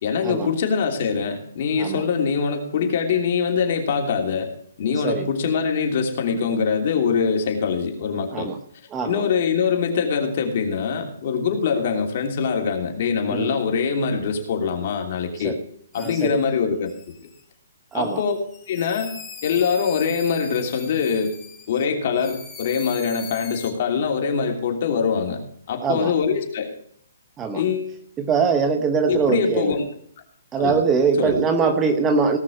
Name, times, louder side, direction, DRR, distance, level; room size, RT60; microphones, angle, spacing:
voice 1, 0.0-4.5 4.8-8.5 9.0-15.6 15.9-17.1 17.9-18.4 18.7-19.1 19.4-21.4 21.7-25.4 25.7-26.7 27.5-27.9 29.1-29.8 30.6-30.8 31.2-31.4, left 6 dB, 45° left, 3 dB, 3.0 m, -23 dB
voice 2, 8.9-9.3 13.3-13.5 15.4-15.5 16.0-16.4 17.9-18.2 25.8-26.1 27.4-27.6 28.2-29.7 30.5-32.4, right 5 dB, 15° right, 6 dB, 0.9 m, -22 dB
sound 1, 15.9-16.4 16.9-17.4 17.9-21.9 22.1-23.7, left 6 dB, 10° left, 2.7 m, -41 dB
18.0 x 6.2 x 6.5 m, 0.63 s
hypercardioid pair, 165°, 0 cm